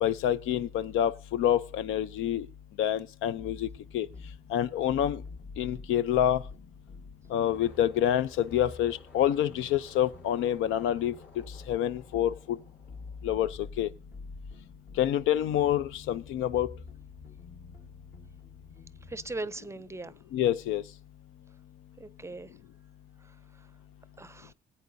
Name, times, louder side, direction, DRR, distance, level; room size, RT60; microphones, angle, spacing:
voice 1, 0.0-2.5 2.8-3.7 3.9-4.1 4.5-5.2 5.6-6.4 7.3-11.1 11.7-12.6 13.2-13.5 13.8-13.9 15.0-16.7 20.3-20.8, left 11 dB, 90° left, 0.5 m, -27 dB
sound 1, 3.4-19.3, left 3 dB, 50° left, 1.2 m, -47 dB
sound 2, 7.4-13.8, left 3 dB, 75° left, 3.7 m, -56 dB
voice 2, 19.1-20.1 22.0-22.5 24.2-24.5, right 2 dB, 15° right, 0.5 m, -39 dB
18.0 x 8.5 x 2.6 m
cardioid pair, 90°, 20 cm